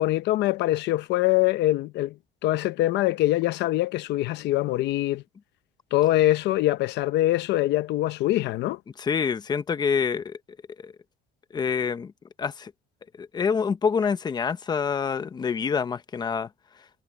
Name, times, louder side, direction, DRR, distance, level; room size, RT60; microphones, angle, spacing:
voice 1, 0.0-2.1 2.4-5.2 5.9-8.8, left 15 dB, 60° left, 0.8 m, -23 dB
voice 2, 9.0-10.4 10.8-10.9 11.5-12.1 12.4-12.7 13.2-16.5, left 6 dB, 20° left, 0.8 m, -26 dB
cardioid pair, 155°, 20 cm